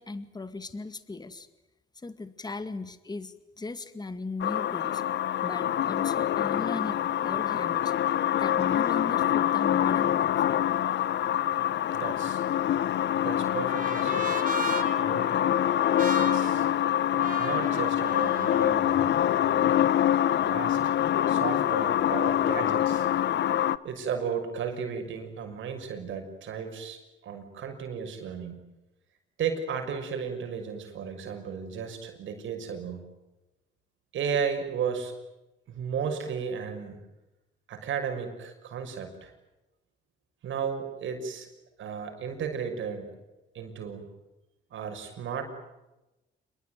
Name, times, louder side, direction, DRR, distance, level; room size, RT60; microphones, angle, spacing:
voice 1, 0.0-1.5 2.0-5.0 5.4-7.9 8.3-10.6, left 3 dB, 20° left, 11 dB, 2.1 m, -38 dB
sound 1, 4.4-23.8, left 11 dB, 65° left, 0.9 m, -25 dB
voice 2, 11.9-12.4 13.2-14.4 15.0-15.3 16.2-16.7 17.4-19.7 20.4-20.8 21.3-23.1 23.8-28.6 29.4-33.0 34.1-35.1 35.7-37.0 37.7-39.3 40.4-41.5 41.8-43.1 43.5-44.0 44.7-45.5, right 6 dB, 75° right, 6 dB, 6.2 m, -34 dB
Trumpet, 12.5-18.8, right 5 dB, 45° right, 4.0 m, -38 dB
27.5 x 22.5 x 9.4 m, 0.99 s
cardioid pair, 90°, 20 cm